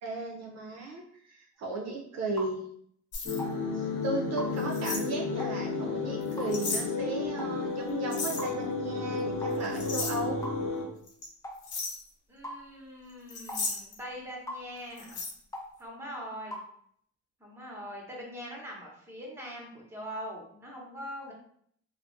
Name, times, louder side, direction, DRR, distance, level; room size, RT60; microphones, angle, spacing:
voice 1, 0.0-2.6 3.7-10.4, right 2 dB, 60° right, 0 dB, 0.5 m, -36 dB
sound 1, 2.4-2.6 3.4-3.6 4.4-4.6 5.4-5.6 6.4-6.6 7.4-7.6 8.4-8.6 9.4-9.6 10.4-10.6 11.4-11.6 12.4-12.6 13.5-13.7 14.5-14.7 15.5-15.7 16.5-16.7, equal, 10° left, 0.4 m, -39 dB
sound 2, 3.1-3.4 4.6-5.0 6.2-6.8 8.1-8.4 9.5-10.2 11.1-11.3 11.6-12.0 13.3-14.0 15.0-15.3, left 4 dB, 85° left, 0.7 m, -35 dB
sound 3, 3.3-10.8, left 4 dB, 45° left, 0.9 m, -32 dB
voice 2, 12.3-15.2 15.8-16.6 17.4-21.3, equal, 10° right, -2 dB, 0.8 m, -42 dB
2.4 x 2.1 x 2.5 m, 0.65 s
cardioid pair, 90°, 30 cm